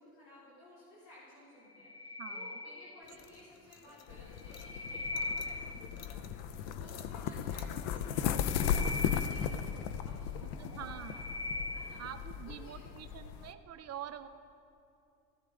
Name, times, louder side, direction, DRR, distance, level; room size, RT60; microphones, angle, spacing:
voice 1, 0.0-12.0 12.5-12.9, left 1 dB, 90° left, -8 dB, 3.3 m, -56 dB
sound 1, 1.6-3.3 4.3-6.1 8.1-10.2 10.7-12.2, left 2 dB, 15° left, 0.9 m, -41 dB
voice 2, 2.2-2.6 10.4-11.2 12.0-14.3, right 10 dB, 40° right, 8 dB, 0.7 m, -46 dB
sound 2, 3.0-8.1, left 6 dB, 40° left, 1.1 m, -56 dB
sound 3, 4.1-13.5, left 8 dB, 70° left, 0.7 m, -36 dB
15.0 x 15.0 x 3.8 m, 2.6 s
supercardioid pair, 85°, 39 cm